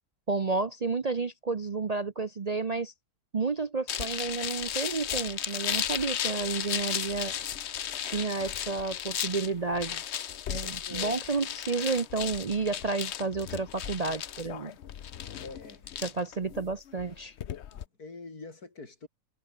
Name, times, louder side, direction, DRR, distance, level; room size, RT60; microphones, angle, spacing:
voice 1, 0.3-2.9 3.3-7.3 8.1-10.0 10.5-14.7 16.0-17.3, right 4 dB, 35° right, 0.6 m, -31 dB
sound 1, 3.9-17.8, left 10 dB, 55° left, 0.9 m, -35 dB
voice 2, 10.6-11.2 15.4-16.1 17.7-19.1, left 3 dB, 85° left, 4.3 m, -45 dB
omnidirectional pair, 1.6 m